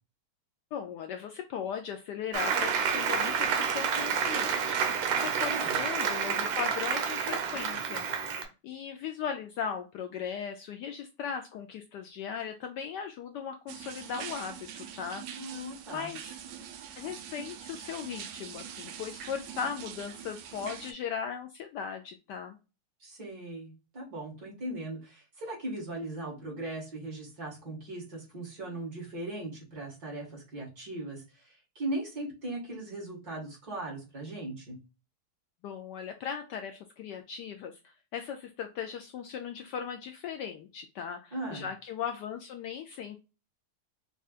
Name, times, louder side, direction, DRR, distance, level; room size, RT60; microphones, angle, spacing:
voice 1, 0.7-8.0 8.6-15.2 15.9-16.4 17.0-22.6 35.6-43.2, left 7 dB, 80° left, 6 dB, 0.9 m, -38 dB
Applause, 2.3-8.4, right 7 dB, 85° right, 1.7 m, -29 dB
voice 2, 5.5-5.8 15.4-16.1 23.0-34.8 41.3-41.7, right 2 dB, 50° right, -3 dB, 2.3 m, -39 dB
sound 1, 13.7-20.9, right 9 dB, 70° right, 1.1 m, -44 dB
5.5 x 2.4 x 2.3 m, 0.30 s
omnidirectional pair, 2.3 m